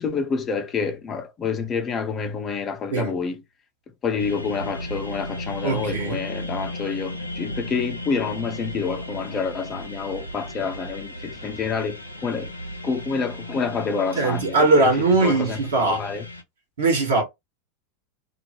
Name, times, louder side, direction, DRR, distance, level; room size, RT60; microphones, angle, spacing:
voice 1, 0.0-3.4 4.0-12.5 12.8-14.9 15.2-15.6 15.9-16.3, left 5 dB, 30° left, 0.6 m, -28 dB
sound 1, 4.2-16.4, left 1 dB, 90° left, 0.6 m, -35 dB
voice 2, 5.6-6.2 14.2-16.0 16.8-17.2, right 3 dB, 70° right, 1.1 m, -20 dB
2.4 x 2.1 x 2.9 m
figure-of-eight pair, 85°, 0 cm